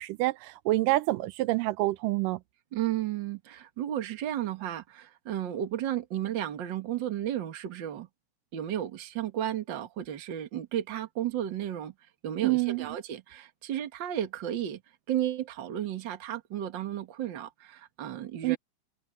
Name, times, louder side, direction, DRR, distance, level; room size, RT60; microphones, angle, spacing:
voice 1, 0.0-2.4 12.4-12.9 18.4-18.6, right 19 dB, 85° right, 2.3 m, -27 dB
voice 2, 2.7-8.1 8.5-11.9 12.2-14.8 15.1-18.6, right 11 dB, 45° right, 1.7 m, -33 dB
omnidirectional pair, 3.7 m